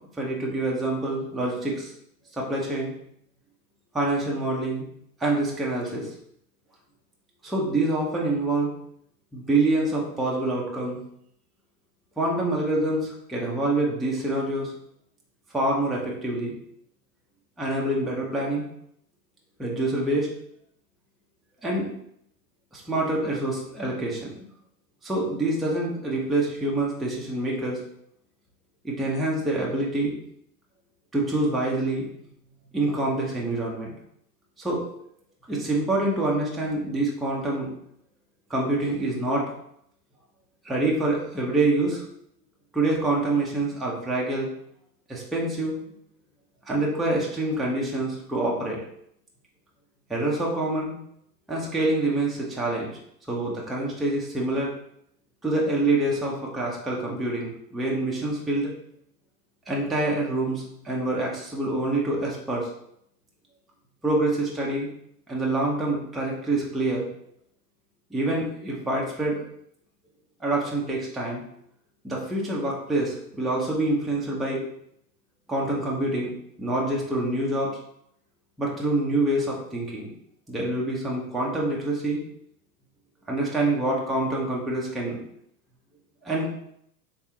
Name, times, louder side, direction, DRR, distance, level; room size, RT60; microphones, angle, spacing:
voice 1, 0.2-1.9 2.3-2.9 3.9-4.8 5.2-6.1 7.4-8.7 9.3-11.0 12.2-14.7 15.5-16.5 17.6-18.6 19.6-20.3 21.6-21.9 22.7-24.3 25.0-27.8 28.8-30.1 31.1-32.0 32.7-33.9 34.6-34.8 35.5-37.7 38.5-39.5 40.6-42.0 42.7-44.5 45.1-45.8 46.7-48.8 50.1-50.9 51.5-52.9 53.3-54.7 55.4-58.7 59.7-62.7 64.0-64.9 65.3-67.1 68.1-69.4 70.4-71.4 72.0-74.6 75.5-76.3 76.6-77.8 78.6-80.1 80.5-82.2 83.3-85.2 86.2-86.5, right 2 dB, ahead, -4 dB, 0.5 m, -26 dB
3.5 x 3.2 x 3.0 m, 0.72 s
hypercardioid pair, 100°, 48 cm